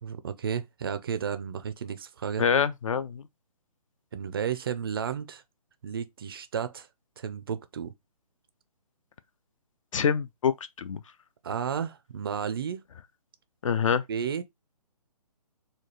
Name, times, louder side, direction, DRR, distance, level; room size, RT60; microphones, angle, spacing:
voice 1, 0.0-2.4 4.1-5.4 5.8-6.9 7.2-7.9 11.4-12.8 14.1-14.4, right 7 dB, 35° right, 0.4 m, -32 dB
voice 2, 2.4-3.2 9.9-11.0 13.6-14.0, left 7 dB, 55° left, 0.4 m, -26 dB
4.2 x 2.3 x 3.0 m
figure-of-eight pair, 145°, 20 cm